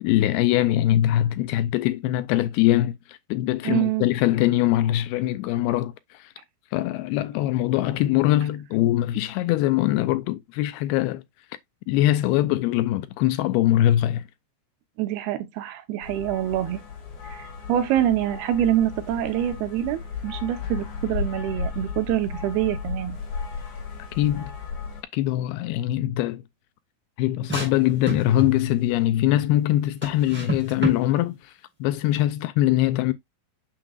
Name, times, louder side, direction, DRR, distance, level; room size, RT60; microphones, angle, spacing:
voice 1, 0.0-6.3 6.7-11.2 11.9-14.2 24.2-24.5 25.1-26.4 27.2-31.5 31.8-33.1, left 14 dB, 80° left, 2.3 m, -22 dB
voice 2, 3.6-4.1 15.0-16.8 17.2-23.2, right 12 dB, 75° right, 2.8 m, -25 dB
sound 1, 16.0-25.0, left 5 dB, 50° left, 3.4 m, -34 dB
sound 2, 27.4-28.7 30.0-31.0, right 2 dB, 5° right, 4.0 m, -30 dB
7.4 x 6.3 x 2.4 m
omnidirectional pair, 4.7 m